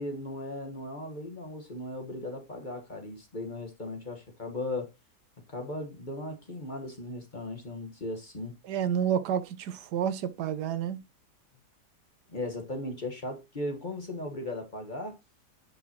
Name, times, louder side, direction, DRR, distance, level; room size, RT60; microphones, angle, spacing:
voice 1, 0.0-4.9 5.5-8.6 12.3-15.2, left 2 dB, 30° left, 1.3 m, -37 dB
voice 2, 8.6-11.0, right 8 dB, 80° right, 1.4 m, -29 dB
9.7 x 5.5 x 2.8 m
omnidirectional pair, 1.8 m